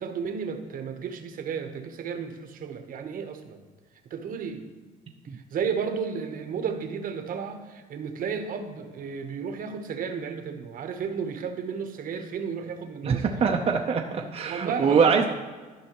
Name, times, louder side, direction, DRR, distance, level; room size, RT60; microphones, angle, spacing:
voice 1, 0.0-3.6 4.1-4.6 5.3-13.5 14.1-14.2 14.4-15.2, right 6 dB, 55° right, 6 dB, 1.0 m, -33 dB
voice 2, 13.0-15.2, right 6 dB, 35° right, 1 dB, 0.6 m, -23 dB
13.0 x 5.5 x 3.0 m, 1.4 s
cardioid pair, 110°, 17 cm